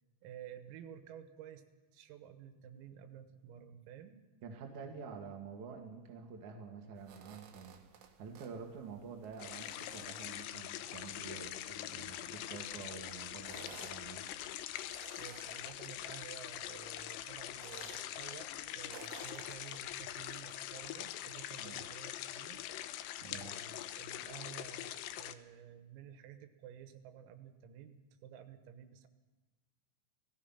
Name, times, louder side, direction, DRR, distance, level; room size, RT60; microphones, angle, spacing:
voice 1, 0.2-1.7 1.9-4.2 15.2-18.5 18.8-22.6 23.3-29.1, right 9 dB, 90° right, 9 dB, 4.0 m, -52 dB
voice 2, 4.4-7.8 8.2-14.3 21.6-21.8 23.2-23.6, right 5 dB, 50° right, 1 dB, 2.5 m, -48 dB
sound 1, 7.0-20.6, right 8 dB, 70° right, 4.0 m, -58 dB
sound 2, 9.4-25.4, left 13 dB, 90° left, 2.4 m, -44 dB
28.0 x 18.0 x 5.8 m, 1.2 s
omnidirectional pair, 5.9 m